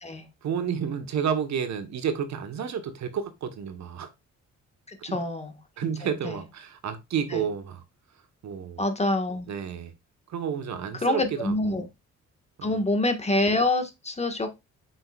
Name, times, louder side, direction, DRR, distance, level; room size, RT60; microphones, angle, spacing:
voice 1, 0.4-4.1 5.1-5.2 5.8-7.8 8.4-8.8 9.5-9.9 10.3-11.8 12.6-12.7, right 7 dB, 65° right, 1.4 m, -30 dB
voice 2, 4.9-5.5 6.2-6.4 7.3-7.5 8.8-9.5 11.0-11.9 12.6-14.6, left 2 dB, 20° left, 1.7 m, -26 dB
7.7 x 5.8 x 2.5 m
cardioid pair, 90°, 30 cm